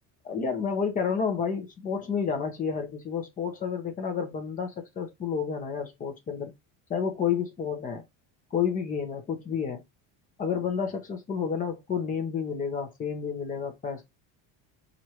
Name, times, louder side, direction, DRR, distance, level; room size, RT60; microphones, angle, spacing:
voice 1, 0.2-6.5 6.9-8.0 8.5-9.8 10.4-14.0, left 6 dB, 20° left, 0.8 m, -30 dB
4.7 x 2.5 x 2.9 m
cardioid pair, 175°, 42 cm